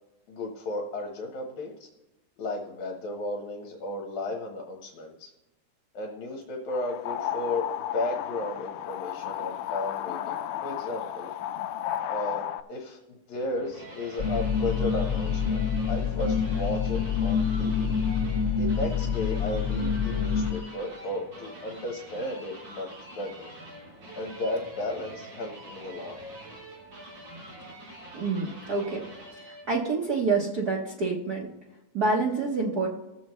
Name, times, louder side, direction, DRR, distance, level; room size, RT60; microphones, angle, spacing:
voice 1, 0.3-1.9 2.4-5.3 5.9-11.3 12.1-17.9 18.6-22.9 23.2-23.5 24.1-26.2, left 2 dB, 70° left, 0 dB, 2.5 m, -34 dB
sound 1, 6.7-12.6, left 11 dB, 85° left, 2.1 m, -33 dB
sound 2, 13.3-29.8, right 1 dB, 45° right, 5.0 m, -45 dB
sound 3, 14.2-20.5, left 6 dB, 40° left, 1.1 m, -27 dB
voice 2, 28.1-29.0 29.3-31.5 31.9-32.9, right 3 dB, 85° right, -3 dB, 0.8 m, -27 dB
19.5 x 7.3 x 3.1 m, 0.97 s
omnidirectional pair, 3.5 m